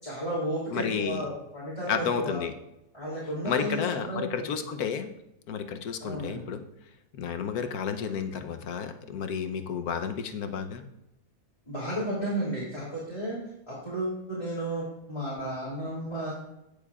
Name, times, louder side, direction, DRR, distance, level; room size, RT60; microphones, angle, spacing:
voice 1, 0.0-2.4 2.9-4.6 6.0-6.4 11.6-13.4 13.7-16.3, right 1 dB, 20° left, -7 dB, 3.1 m, -33 dB
voice 2, 0.7-1.2 1.9-2.5 3.4-5.1 5.5-6.6 7.2-10.8, left 7 dB, 75° left, 8 dB, 1.3 m, -31 dB
17.0 x 7.0 x 2.4 m, 0.85 s
omnidirectional pair, 1.6 m